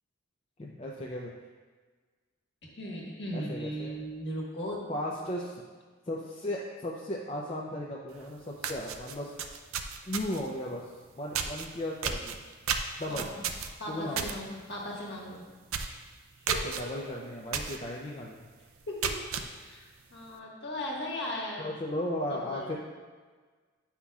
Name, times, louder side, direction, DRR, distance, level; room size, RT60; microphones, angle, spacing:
voice 1, 0.6-1.3 3.3-4.0 4.9-5.6 6.1-9.3 10.1-10.8 11.2-12.4 13.0-13.3 13.9-14.3 16.5-18.4 21.6-22.8, left 1 dB, 30° left, -3 dB, 0.5 m, -36 dB
voice 2, 2.6-4.9 5.2-5.4 13.1-13.2 13.8-15.5 16.5-16.7 18.9-21.7 22.3-22.8, equal, 55° left, -3 dB, 1.5 m, -38 dB
sound 1, 8.2-8.3 8.6-10.5 11.3-11.7 12.0-14.4 14.7-15.0 15.3-15.4 15.7-16.0 16.5-16.8 17.5-17.8 18.2-18.3 18.8-19.5, right 7 dB, 85° right, 0.5 m, -32 dB
9.8 x 5.7 x 2.3 m, 1.4 s
head